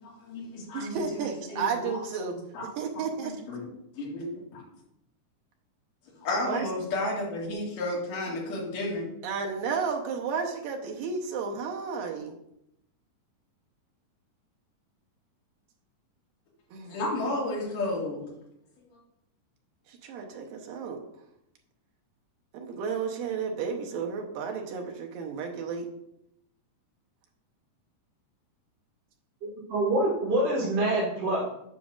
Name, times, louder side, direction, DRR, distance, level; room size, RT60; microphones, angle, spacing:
voice 1, 0.0-2.0 2.3-2.7 3.2-3.7 3.9-4.6 6.2-9.1 16.9-18.3, left 2 dB, 75° left, -4 dB, 3.6 m, -32 dB
voice 2, 0.7-2.4 2.8-3.4 6.4-6.7 9.2-12.4 16.7-17.0 19.9-21.0 22.5-25.9, right 5 dB, 90° right, 2 dB, 2.7 m, -32 dB
voice 3, 29.4-31.4, right 1 dB, 65° right, -5 dB, 3.4 m, -26 dB
9.0 x 7.0 x 2.5 m, 0.79 s
omnidirectional pair, 3.9 m